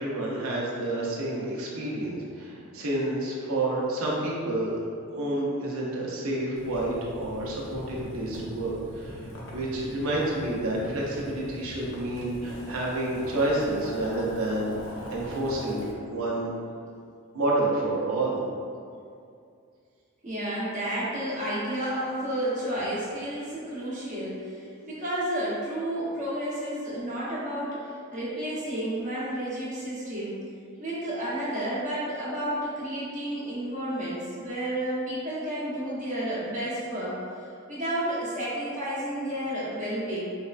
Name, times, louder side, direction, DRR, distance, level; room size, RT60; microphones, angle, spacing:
voice 1, 0.0-4.7 5.1-14.8 15.1-16.5 17.3-18.4, right 1 dB, 70° right, -4 dB, 0.7 m, -29 dB
Boiling, 6.6-15.9, equal, 65° left, 0.7 m, -41 dB
voice 2, 20.2-30.4 30.8-40.3, right 1 dB, 40° right, -9 dB, 0.9 m, -31 dB
4.2 x 2.1 x 2.4 m, 2.4 s
head